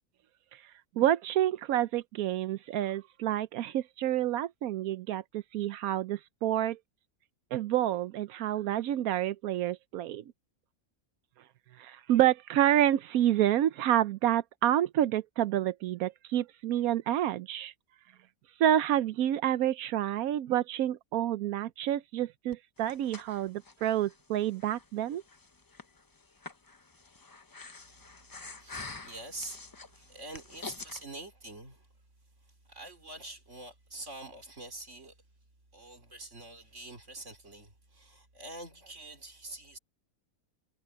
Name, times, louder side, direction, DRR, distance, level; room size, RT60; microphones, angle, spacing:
voice 1, 1.0-6.8 7.5-10.2 11.8-17.7 18.6-25.2, right 12 dB, 85° right, 1.1 m, -28 dB
Breathing, 22.5-31.0, left 3 dB, 30° left, 0.4 m, -47 dB
voice 2, 28.6-31.9 32.4-35.2 35.7-39.8, right 2 dB, 55° right, 4.7 m, -46 dB
omnidirectional pair, 1.5 m